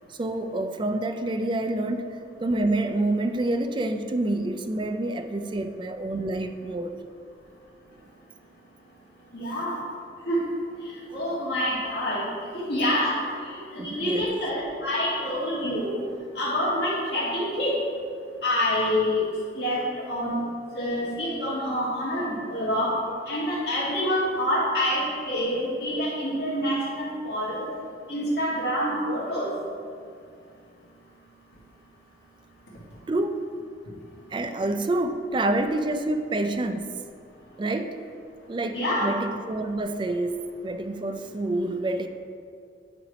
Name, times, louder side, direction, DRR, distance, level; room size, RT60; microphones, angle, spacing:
voice 1, 0.1-7.0 13.8-14.4 33.1-33.5 34.3-36.9 37.6-38.0 38.5-42.1, right 2 dB, 25° right, 8 dB, 0.4 m, -27 dB
voice 2, 9.3-9.8 10.3-10.4 11.1-12.3 12.7-13.2 13.5-16.0 16.4-17.8 18.4-19.2 19.6-20.4 20.7-23.0 23.3-27.7 28.1-29.5 38.7-39.1, equal, 70° left, -8 dB, 1.8 m, -27 dB
9.0 x 3.3 x 5.0 m, 2.3 s
head